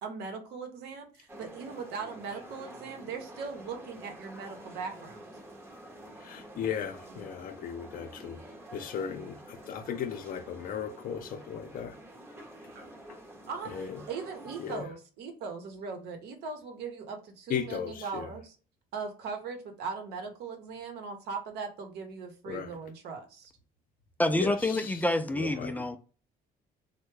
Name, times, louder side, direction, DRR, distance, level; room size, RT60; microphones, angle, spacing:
voice 1, 0.0-5.2 9.7-10.0 12.7-12.9 13.5-18.6 18.9-23.5 25.4-25.6, right 5 dB, 80° right, 0.8 m, -39 dB
sound 1, 1.3-14.8, right 1 dB, 15° right, 0.7 m, -48 dB
voice 2, 6.2-8.4 8.7-12.0 13.7-14.0 14.6-14.8 17.5-18.3 22.5-22.7 24.4-24.9 25.3-26.0, left 8 dB, 55° left, 0.6 m, -36 dB
voice 3, 24.2-26.0, left 1 dB, 10° left, 0.3 m, -27 dB
3.3 x 2.1 x 3.2 m
cardioid pair, 110°, 17 cm